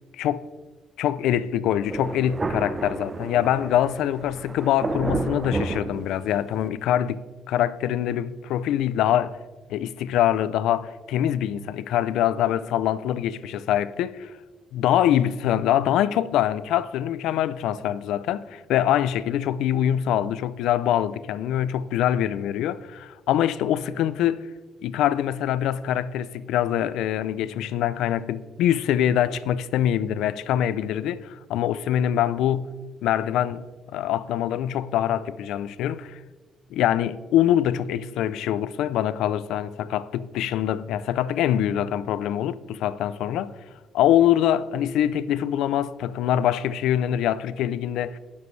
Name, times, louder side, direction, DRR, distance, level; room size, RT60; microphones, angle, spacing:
voice 1, 1.0-9.4 9.7-14.3 14.7-24.5 24.8-36.2 36.7-43.5 43.9-48.2, left 11 dB, 90° left, 0.4 m, -24 dB
Thunder, 1.9-6.7, right 3 dB, 30° right, 0.7 m, -31 dB
19.0 x 7.1 x 3.3 m
cardioid pair, 90°, 0 cm